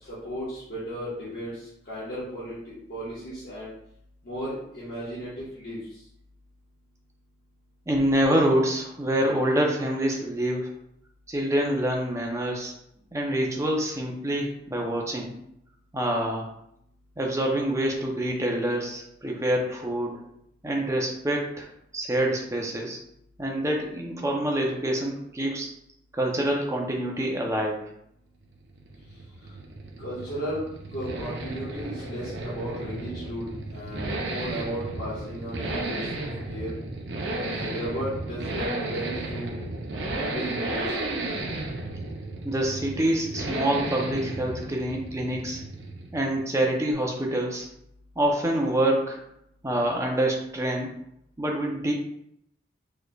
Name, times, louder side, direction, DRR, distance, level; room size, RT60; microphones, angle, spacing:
voice 1, 0.0-3.7 4.2-5.8 30.0-36.7 37.3-39.5 40.1-41.1, equal, 55° left, -10 dB, 1.2 m, -35 dB
voice 2, 7.9-10.7 11.3-12.7 13.1-15.4 15.9-16.5 17.2-20.2 20.6-21.7 21.9-23.0 23.4-25.7 26.1-27.9 42.4-45.6 46.1-47.7 48.2-49.2 49.6-50.9 51.4-51.9, right 1 dB, 15° right, 0 dB, 0.6 m, -26 dB
sound 1, 28.4-46.5, right 2 dB, 65° right, 0.6 m, -34 dB
4.2 x 3.2 x 2.3 m, 0.74 s
head